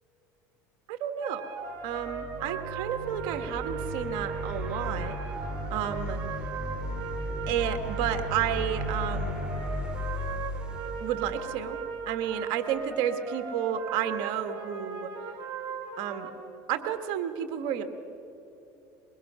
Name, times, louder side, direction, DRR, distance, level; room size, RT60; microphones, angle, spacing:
voice 1, 0.9-1.4 1.8-5.2 5.7-6.2 7.5-9.5 11.0-11.8 12.0-15.1 16.0-16.3 16.7-17.8, right 9 dB, 70° right, 9 dB, 1.6 m, -31 dB
sound 1, 1.2-16.3, right 5 dB, 50° right, 4.1 m, -38 dB
sound 2, 1.8-12.0, left 1 dB, 10° right, 3.0 m, -35 dB
23.0 x 22.5 x 5.7 m, 3.0 s
supercardioid pair, 90°, 9 cm